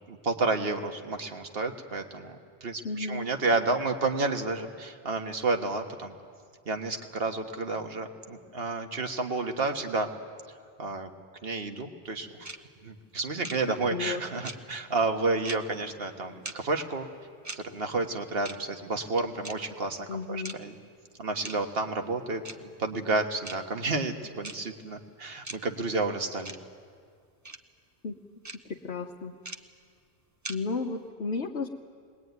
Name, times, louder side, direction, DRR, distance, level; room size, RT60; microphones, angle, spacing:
voice 1, 0.1-6.2 6.7-10.1 10.8-11.1 11.4-12.5 12.8-17.1 17.6-20.7 21.2-26.5, right 3 dB, 60° right, 5 dB, 1.7 m, -31 dB
voice 2, 2.8-3.3 13.9-14.2 20.1-20.6 28.0-28.2 28.6-29.3 30.5-31.7, left 4 dB, 70° left, 1 dB, 1.2 m, -33 dB
sound 1, 12.4-12.6 13.4-13.6 14.4-14.6 15.4-15.6 16.4-16.6 17.4-17.6 18.4-18.6 19.4-19.5 20.4-20.6 21.4-21.6 22.4-22.6 23.4-23.6 24.4-24.6 25.4-25.6 26.4-26.6 27.4-27.6 28.4-28.6 29.4-29.6 30.4-30.6, right 2 dB, 20° right, 0.7 m, -38 dB
23.0 x 20.5 x 9.4 m, 2.1 s
omnidirectional pair, 1.1 m